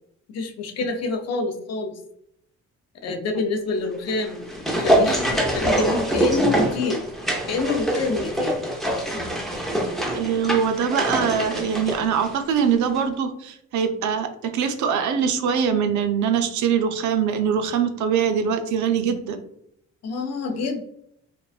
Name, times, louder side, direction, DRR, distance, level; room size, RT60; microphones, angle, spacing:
voice 1, 0.3-1.9 3.0-7.0 7.5-8.6 20.0-20.8, left 3 dB, 60° left, 6 dB, 0.5 m, -27 dB
sound 1, 4.1-12.7 12.9-13.0, right 1 dB, ahead, 0.5 m, -24 dB
voice 2, 10.1-19.4, right 7 dB, 75° right, 8 dB, 0.5 m, -23 dB
2.5 x 2.2 x 2.3 m, 0.72 s
cardioid pair, 90°, 30 cm